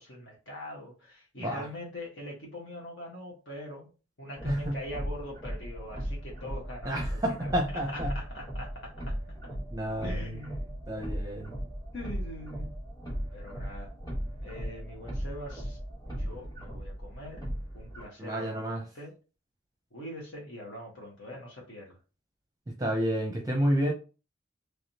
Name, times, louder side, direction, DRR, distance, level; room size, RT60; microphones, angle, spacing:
voice 1, 0.0-3.9 4.2-9.1 10.0-10.8 11.9-12.7 13.3-13.9 14.3-15.8 16.1-17.5 17.7-19.1 19.9-22.0, left 1 dB, 65° left, -3 dB, 1.2 m, -43 dB
sound 1, 4.4-18.0, equal, 20° left, 1.4 m, -37 dB
voice 2, 4.4-4.8 6.8-8.1 9.7-10.3 10.9-11.5 18.2-18.8 22.8-23.9, equal, 15° right, 1 dB, 0.6 m, -30 dB
3.5 x 3.3 x 2.8 m, 0.33 s
head